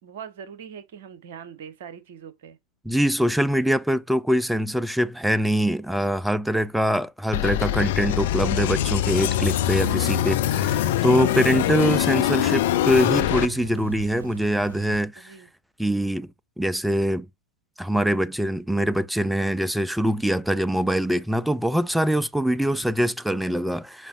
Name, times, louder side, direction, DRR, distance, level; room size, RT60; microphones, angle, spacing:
voice 1, 0.0-2.6 15.1-15.5 22.7-22.9, right 7 dB, 55° right, 1.3 m, -42 dB
voice 2, 2.8-15.3 15.8-16.3 16.6-17.3 17.8-24.1, equal, ahead, 0.4 m, -23 dB
sound 1, 7.3-13.5, left 13 dB, 55° left, 0.6 m, -23 dB
sound 2, 9.2-15.0, right 4 dB, 70° right, 1.1 m, -39 dB
8.1 x 5.2 x 2.6 m
figure-of-eight pair, 90°, 0 cm